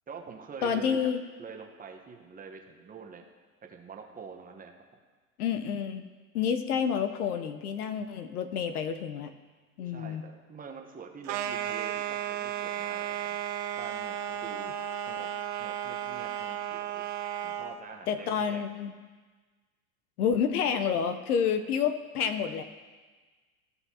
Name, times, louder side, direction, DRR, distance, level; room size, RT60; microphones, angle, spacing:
voice 1, 0.1-1.1 1.4-3.2 3.6-4.7 9.8-13.4 13.7-14.7 15.1-15.3 15.6-17.0 17.4-18.7, right 5 dB, 20° right, 3 dB, 1.0 m, -46 dB
voice 2, 0.6-1.2 5.4-6.1 6.3-9.3 9.8-10.2 18.1-18.9 20.2-22.6, left 7 dB, 85° left, 10 dB, 0.8 m, -29 dB
sound 1, 11.2-17.8, right 11 dB, 40° right, 0.7 m, -34 dB
15.5 x 5.6 x 2.8 m, 1.4 s
hypercardioid pair, 105°, 44 cm